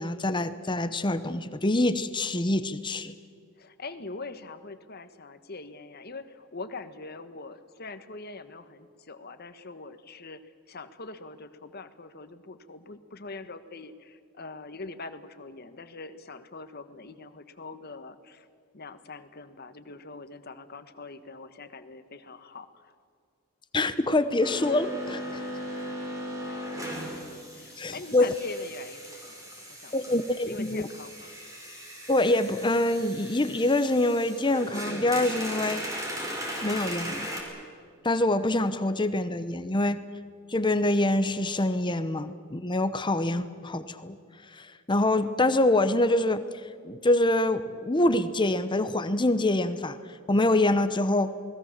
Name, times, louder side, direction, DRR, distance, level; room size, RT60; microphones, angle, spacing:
voice 1, 0.0-3.1 23.7-25.4 27.8-28.3 29.9-30.9 32.1-35.8 36.6-37.3 38.0-40.0 40.5-44.2 44.5-46.4 46.8-50.0 50.3-51.3, left 1 dB, 20° left, 11 dB, 0.8 m, -25 dB
voice 2, 3.6-10.4 10.7-18.5 18.7-22.9 26.4-26.6 27.5-31.3, left 3 dB, 45° left, 10 dB, 1.4 m, -43 dB
sound 1, 24.4-37.4, equal, 15° right, 4.9 m, -38 dB
28.5 x 20.0 x 7.4 m, 2.1 s
head